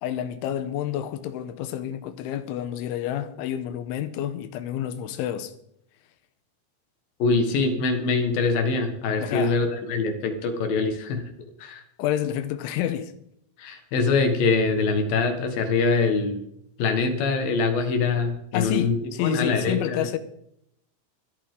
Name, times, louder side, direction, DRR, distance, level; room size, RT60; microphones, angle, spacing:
voice 1, 0.0-5.5 9.2-9.6 12.0-13.1 18.5-20.2, left 11 dB, 85° left, 3.3 m, -29 dB
voice 2, 7.2-11.2 11.6-11.8 13.6-16.4 16.8-20.1, left 4 dB, 60° left, 2.8 m, -24 dB
23.0 x 8.7 x 3.8 m
omnidirectional pair, 5.5 m